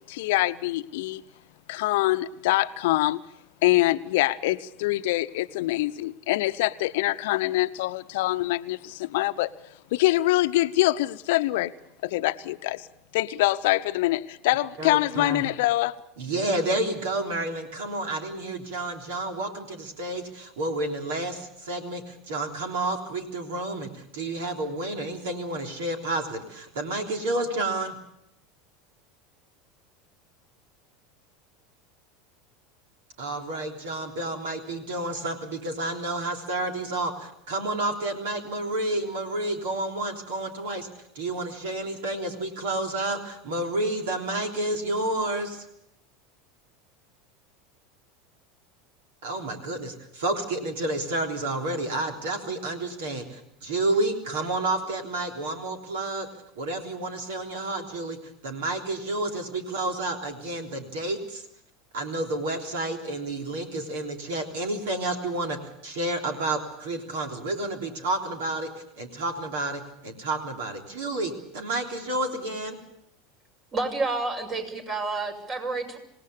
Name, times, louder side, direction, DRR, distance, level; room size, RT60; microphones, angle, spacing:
voice 1, 0.1-1.2 1.7-3.2 3.6-9.5 9.9-11.7 12.0-12.9 13.1-16.0, left 17 dB, 65° left, 12 dB, 0.8 m, -24 dB
voice 2, 14.8-15.4 16.2-27.9 33.2-40.9 41.2-45.6 49.2-56.3 56.6-58.2 58.4-61.5 61.9-68.7 69.0-72.8, right 2 dB, 70° right, 4 dB, 3.4 m, -30 dB
voice 3, 73.7-76.0, right 3 dB, 40° right, 4 dB, 6.3 m, -29 dB
26.5 x 18.5 x 6.9 m, 0.77 s
hypercardioid pair, 80°, 0 cm